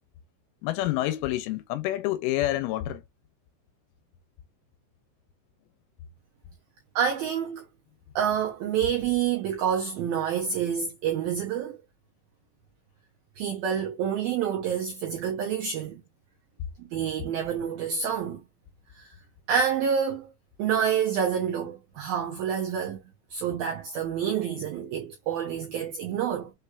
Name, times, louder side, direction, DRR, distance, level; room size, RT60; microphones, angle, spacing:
voice 1, 0.6-3.0, left 15 dB, 85° left, 3.1 m, -28 dB
voice 2, 7.0-7.6 8.2-11.8 13.4-16.0 16.8-18.4 19.0-19.1 19.5-20.3 20.6-23.0 23.3-26.5, right 8 dB, 75° right, 2.2 m, -28 dB
7.0 x 3.3 x 2.3 m
omnidirectional pair, 5.6 m